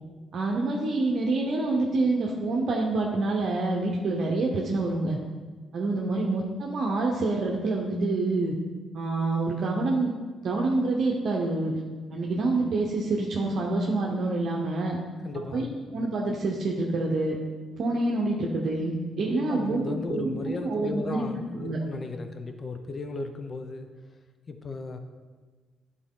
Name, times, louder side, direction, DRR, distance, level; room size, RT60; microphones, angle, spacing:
voice 1, 0.3-5.2 5.7-8.5 8.9-10.1 10.4-11.7 12.1-15.0 15.5-15.7 15.9-17.4 17.8-21.2 21.5-21.8, right 2 dB, 60° right, -1 dB, 0.8 m, -27 dB
voice 2, 15.2-15.7 19.3-23.9 24.5-25.0, left 3 dB, 40° left, 6 dB, 0.6 m, -35 dB
10.5 x 4.0 x 3.7 m, 1.4 s
cardioid pair, 90°, 0 cm